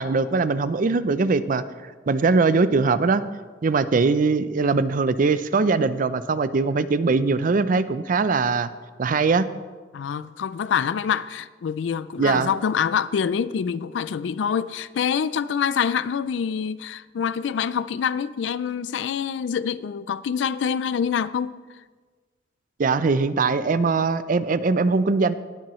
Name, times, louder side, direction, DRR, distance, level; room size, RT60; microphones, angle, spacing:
voice 1, 0.0-1.6 2.1-3.2 3.6-8.7 9.0-9.5 12.2-12.5 22.8-25.3, right 4 dB, 50° right, 0.5 m, -21 dB
voice 2, 9.9-21.6, left 7 dB, 90° left, 0.4 m, -26 dB
19.5 x 7.5 x 3.1 m
head